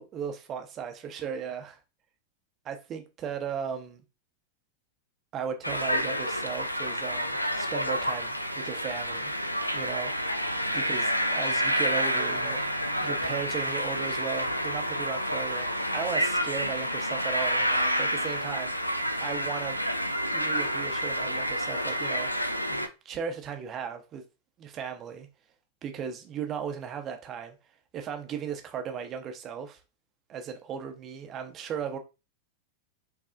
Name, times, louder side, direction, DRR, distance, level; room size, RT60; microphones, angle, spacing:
voice 1, 0.0-1.8 2.6-4.0 5.3-9.3 9.7-10.2 10.7-18.9 19.2-19.8 20.3-22.3 22.6-24.2 24.6-25.3 25.8-27.6 27.9-29.8 30.3-32.0, right 7 dB, 30° right, 0.9 m, -36 dB
sound 1, 5.6-22.9, equal, 90° left, 0.4 m, -29 dB
6.2 x 3.3 x 2.5 m
figure-of-eight pair, 90°, 0 cm